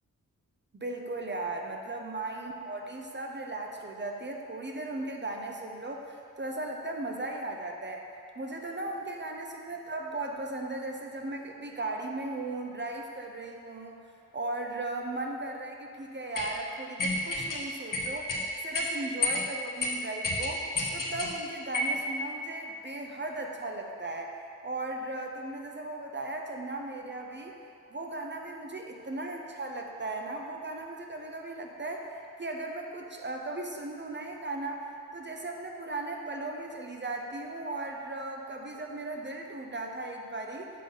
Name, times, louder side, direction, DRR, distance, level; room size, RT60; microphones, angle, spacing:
voice 1, 0.8-8.0 8.4-14.0 14.3-18.4 18.6-20.6 20.9-24.3 24.6-27.6 27.9-34.9 35.1-40.7, right 2 dB, 30° right, 1 dB, 0.7 m, -37 dB
sound 1, 16.4-16.5 17.0-17.6 17.9-18.4 18.7-18.9 19.2-19.4 19.8-19.9 20.2-21.3 21.7-22.0, left 2 dB, 65° left, 1.1 m, -29 dB
7.5 x 3.8 x 5.5 m, 2.5 s
cardioid pair, 55°, 34 cm